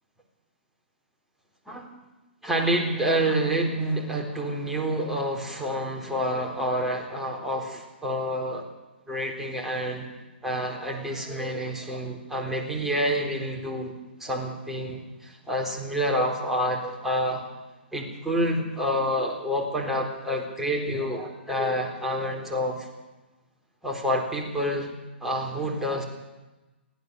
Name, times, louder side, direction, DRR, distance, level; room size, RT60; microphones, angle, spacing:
voice 1, 2.4-8.7 9.1-10.1 10.4-13.9 14.2-17.4 17.9-22.9 23.8-24.9 25.2-26.0, equal, 5° right, -1 dB, 4.1 m, -28 dB
24.0 x 16.0 x 7.0 m, 1.1 s
hypercardioid pair, 130°, 6 cm